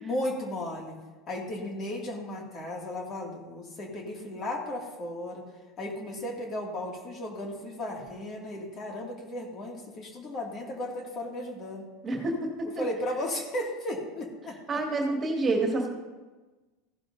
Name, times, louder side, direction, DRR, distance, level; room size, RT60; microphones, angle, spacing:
voice 1, 0.0-1.0 1.3-5.5 5.8-11.8 12.6-14.8, left 1 dB, 35° left, 0 dB, 2.3 m, -35 dB
voice 2, 12.0-12.5 14.7-15.9, right 2 dB, 25° right, 0 dB, 2.3 m, -27 dB
15.5 x 11.0 x 2.7 m, 1.2 s
supercardioid pair, 110°, 0 cm